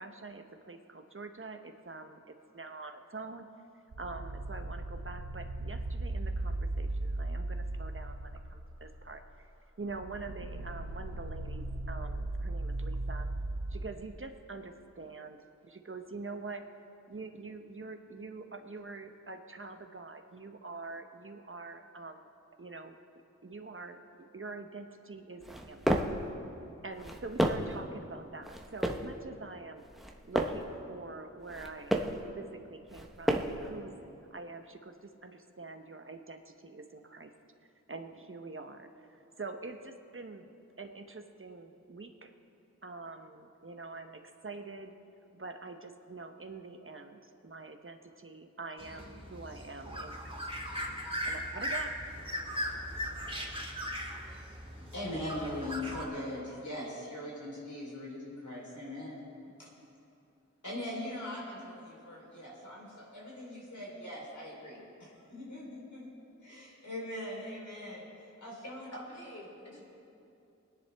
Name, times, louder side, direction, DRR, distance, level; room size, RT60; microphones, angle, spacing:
voice 1, 0.0-3.5 4.0-9.2 9.8-13.3 13.7-16.6 17.1-22.2 22.6-23.0 23.4-24.0 24.3-25.9 26.8-29.8 30.2-31.9 32.4-34.0 34.3-37.3 37.9-40.5 40.8-42.3 42.8-45.0 45.3-50.4 51.2-52.0, right 3 dB, 45° right, 6 dB, 0.9 m, -45 dB
sound 1, 3.9-9.5 9.8-13.8, right 2 dB, 85° right, 0.9 m, -37 dB
sound 2, 25.4-26.2 26.9-27.8 28.4-29.1 29.8-30.7 31.4-32.2 32.9-33.7, equal, ahead, 0.9 m, -32 dB
sound 3, 48.8-56.0, equal, 20° right, 2.0 m, -38 dB
voice 2, 54.8-59.2 59.6-59.7 60.6-66.1 66.4-69.0, left 1 dB, 85° left, -5 dB, 3.8 m, -41 dB
voice 3, 68.6-69.8, equal, 60° left, -5 dB, 2.9 m, -47 dB
22.0 x 10.5 x 3.5 m, 2.7 s
wide cardioid pair, 50°, 29 cm